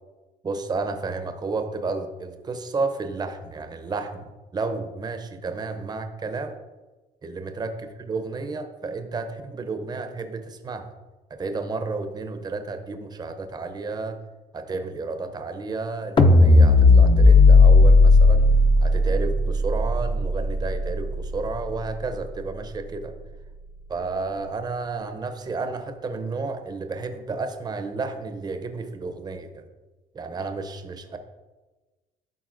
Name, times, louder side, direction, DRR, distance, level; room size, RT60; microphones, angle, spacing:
voice 1, 0.4-6.5 7.2-10.9 11.3-14.2 14.5-18.5 18.8-23.1 23.9-29.6 30.1-31.2, right 3 dB, 25° right, 7 dB, 0.6 m, -31 dB
sound 1, 16.2-22.5, left 3 dB, 30° left, 0.5 m, -16 dB
12.0 x 4.0 x 2.5 m, 1.2 s
cardioid pair, 110°, 17 cm